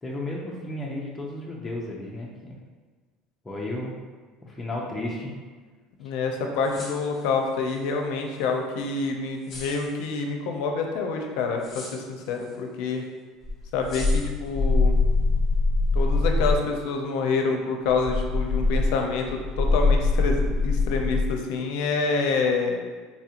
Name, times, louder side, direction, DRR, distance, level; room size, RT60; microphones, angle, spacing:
voice 1, 0.0-2.6 3.4-3.9 4.4-5.3, left 1 dB, 10° left, -3 dB, 0.4 m, -33 dB
voice 2, 6.0-13.0 13.7-14.9 15.9-22.8, left 4 dB, 65° left, 3 dB, 0.5 m, -27 dB
sound 1, 6.5-7.9 8.3-8.4 9.4-10.0 11.6-12.5 12.9-13.0 13.8-14.5, left 1 dB, 25° left, 0.9 m, -42 dB
sound 2, 13.4-16.7 17.9-21.3, left 3 dB, 15° right, 0.8 m, -23 dB
4.1 x 2.4 x 2.8 m, 1.5 s
cardioid pair, 170°, 0 cm